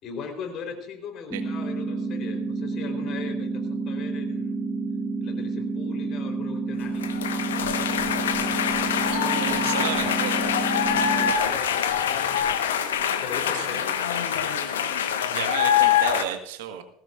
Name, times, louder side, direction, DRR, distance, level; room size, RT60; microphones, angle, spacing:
voice 1, 0.0-4.6 5.2-7.2 9.4-9.9 11.0-12.5 13.2-14.0, left 6 dB, 45° left, 4 dB, 3.8 m, -39 dB
sound 1, 1.3-11.3, right 3 dB, 5° right, 2.3 m, -29 dB
sound 2, 7.0-16.2, left 8 dB, 75° left, 1.2 m, -24 dB
voice 2, 9.1-10.4 13.5-13.8 15.0-16.8, right 10 dB, 70° right, 7 dB, 1.5 m, -33 dB
20.0 x 16.5 x 2.5 m, 0.76 s
figure-of-eight pair, 70°, 0 cm